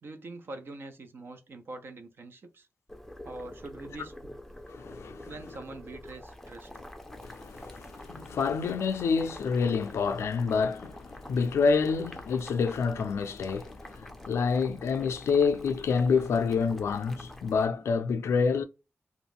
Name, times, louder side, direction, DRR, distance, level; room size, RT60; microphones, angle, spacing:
voice 1, 0.0-2.7 3.2-4.1 5.2-6.7, right 2 dB, 60° right, 0.6 m, -44 dB
Boiling, 2.9-17.7, left 1 dB, 5° left, 0.5 m, -47 dB
voice 2, 4.7-5.3 7.1-18.6, left 5 dB, 90° left, 0.3 m, -28 dB
2.4 x 2.1 x 3.4 m
wide cardioid pair, 90°, 4 cm